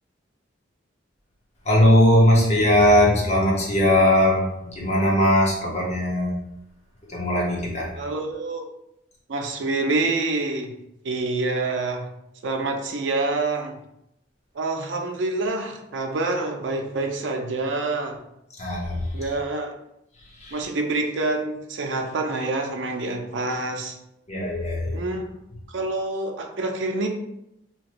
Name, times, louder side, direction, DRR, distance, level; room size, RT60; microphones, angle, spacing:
voice 1, 1.7-6.3 7.1-7.9 18.6-19.0 20.4-20.6 24.3-25.0, left 1 dB, 35° left, -3 dB, 0.8 m, -19 dB
voice 2, 8.0-8.7 9.3-10.7 11.0-12.1 12.4-13.7 14.5-18.2 19.1-19.7 20.5-24.0 24.9-25.2 25.7-27.1, right 2 dB, 75° right, 3 dB, 0.5 m, -27 dB
3.1 x 2.9 x 2.5 m, 0.83 s
head